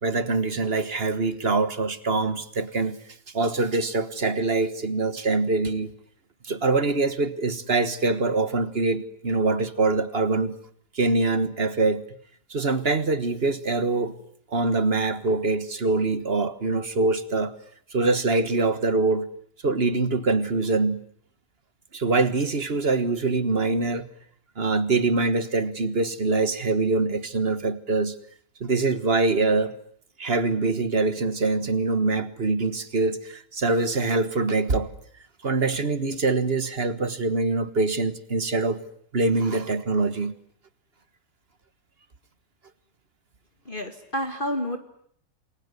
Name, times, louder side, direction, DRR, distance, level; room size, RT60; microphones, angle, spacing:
voice 1, 0.0-3.0 3.3-5.9 6.4-10.6 10.9-12.0 12.5-14.2 14.5-17.5 17.9-19.3 19.6-21.0 21.9-24.1 24.6-28.2 28.6-29.7 30.2-34.9 35.4-38.8 39.1-40.3, right 3 dB, 40° right, 13 dB, 1.6 m, -24 dB
voice 2, 43.7-44.8, equal, 30° left, 5 dB, 2.2 m, -29 dB
28.0 x 22.0 x 9.6 m, 0.64 s
omnidirectional pair, 1.8 m